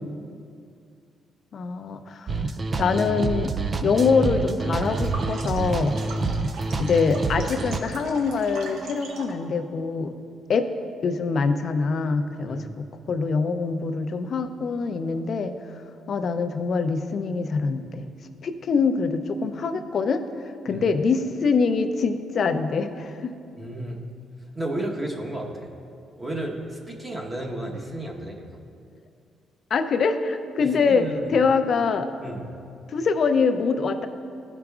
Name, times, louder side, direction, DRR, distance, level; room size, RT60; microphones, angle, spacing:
voice 1, 1.5-2.4 2.8-3.5 3.8-6.1 6.8-10.1 10.5-10.7 11.0-15.5 16.1-18.1 18.4-20.2 20.6-23.3 29.7-32.1 32.9-34.1, left 4 dB, 55° left, 8 dB, 0.5 m, -24 dB
sound 1, 2.3-7.8, right 3 dB, 35° right, 0.3 m, -27 dB
sound 2, 4.6-9.4, right 3 dB, 75° right, 0.9 m, -41 dB
voice 2, 23.6-24.0 24.6-25.5 26.2-28.5 30.6-31.4 32.2-32.6, right 1 dB, 20° right, -1 dB, 1.1 m, -32 dB
13.0 x 4.9 x 2.4 m, 2.4 s
cardioid pair, 90°, 0 cm